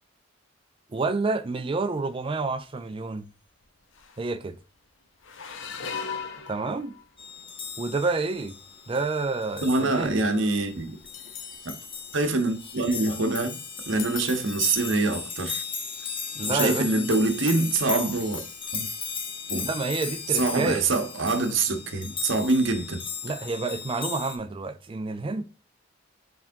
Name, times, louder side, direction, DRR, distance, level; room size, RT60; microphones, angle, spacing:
voice 1, 0.9-3.3 4.2-4.6 6.5-6.9 7.8-8.6 8.9-10.1 16.3-16.9 19.7-20.9 23.2-25.4, right 3 dB, 25° right, 0.4 m, -29 dB
sound 1, 1.9-2.3 2.6-2.9 3.6-3.7 3.9-4.4 5.2-7.3 8.0-8.3 9.0-13.4 13.8-14.8 15.4-15.5 15.8-16.1 17.9-18.7 19.0-19.1 20.5-20.6, left 6 dB, 65° left, 0.7 m, -41 dB
sound 2, 7.2-24.4, left 5 dB, 25° left, 0.7 m, -36 dB
voice 2, 9.6-11.0 11.6-11.7 12.1-13.6 13.9-15.6 16.5-18.4 18.7-18.9 19.5-19.7 20.3-23.0, right 3 dB, 65° right, 0.9 m, -25 dB
4.7 x 3.5 x 2.6 m
head